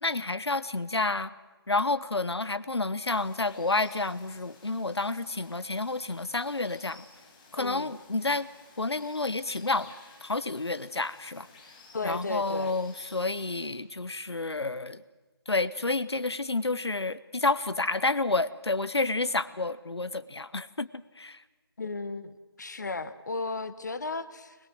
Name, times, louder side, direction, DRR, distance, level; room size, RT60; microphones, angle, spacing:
voice 1, 0.0-1.3 1.7-7.0 7.5-8.5 8.8-9.9 10.2-11.5 12.0-15.0 15.5-21.4, left 3 dB, 85° left, 16 dB, 1.0 m, -30 dB
Water, 3.0-13.7, left 3 dB, 15° left, 2.1 m, -55 dB
voice 2, 7.5-7.9 11.9-12.7 21.8-24.6, left 3 dB, 45° left, 14 dB, 1.1 m, -35 dB
22.0 x 20.0 x 7.7 m, 1.2 s
figure-of-eight pair, 165°, 13 cm